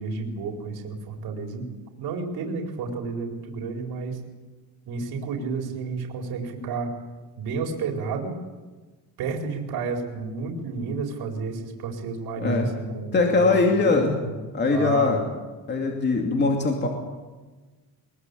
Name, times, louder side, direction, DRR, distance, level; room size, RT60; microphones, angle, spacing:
voice 1, 0.0-1.7 2.0-4.2 4.9-6.9 7.4-8.3 9.2-14.4 14.7-15.2, right 4 dB, 65° right, 2 dB, 4.5 m, -31 dB
voice 2, 12.4-12.7 13.1-14.2 14.5-15.2 15.7-16.9, left 3 dB, 25° left, 2 dB, 2.6 m, -21 dB
22.5 x 22.5 x 8.3 m, 1.3 s
cardioid pair, 180°, 40 cm